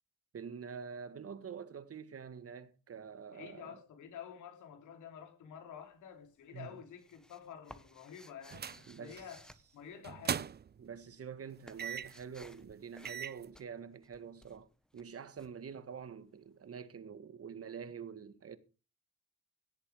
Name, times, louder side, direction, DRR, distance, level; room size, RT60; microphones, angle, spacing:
voice 1, 0.3-3.8 6.5-6.8 8.9-9.2 10.8-14.7 14.9-18.6, right 6 dB, 50° right, 2.0 m, -46 dB
voice 2, 3.3-10.5, left 8 dB, 85° left, 3.9 m, -50 dB
sound 1, 5.8-6.3 6.5-10.6 10.9-16.5, equal, ahead, 1.6 m, -59 dB
sound 2, 8.5-8.8 9.2-9.4 10.0-10.8 11.8-12.2 12.7-12.8 13.0-13.4, right 8 dB, 35° right, 0.5 m, -39 dB
17.5 x 8.4 x 5.0 m
cardioid pair, 75°, 29 cm